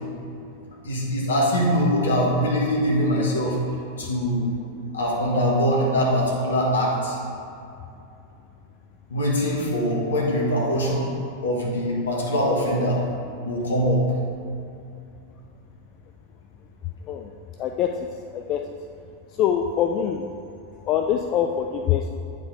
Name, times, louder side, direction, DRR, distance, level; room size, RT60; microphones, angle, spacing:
voice 1, 0.8-3.6 4.0-4.5 4.9-7.2 9.1-11.1 11.4-13.0 13.4-14.0, equal, 70° left, -2 dB, 1.5 m, -22 dB
voice 2, 17.6-17.9 18.3-18.6 19.4-20.3 20.9-22.1, left 9 dB, 35° left, 4 dB, 0.4 m, -23 dB
9.0 x 5.2 x 3.9 m, 2.6 s
figure-of-eight pair, 90°, 0 cm